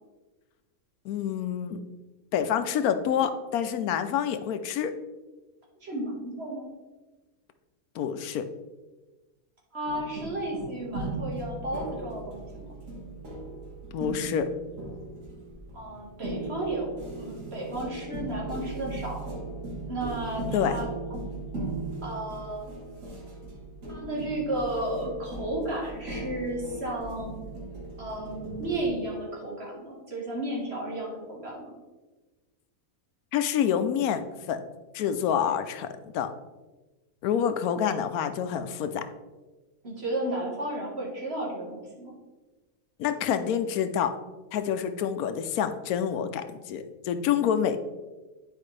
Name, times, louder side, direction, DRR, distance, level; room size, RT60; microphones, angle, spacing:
voice 1, 1.0-1.8 2.3-4.9 7.9-8.4 13.9-14.5 20.5-20.8 33.3-34.6 34.9-36.3 37.2-39.0 43.0-44.1 44.5-47.8, left 8 dB, 85° left, 9 dB, 1.1 m, -27 dB
voice 2, 5.8-6.7 9.7-12.7 15.7-19.2 19.9-20.9 22.0-22.7 23.9-27.3 28.0-31.7 39.8-42.1, right 1 dB, 45° right, -3 dB, 1.8 m, -33 dB
sound 1, 9.9-28.8, right 2 dB, 65° right, 1.9 m, -38 dB
10.0 x 4.8 x 3.2 m, 1.2 s
omnidirectional pair, 1.5 m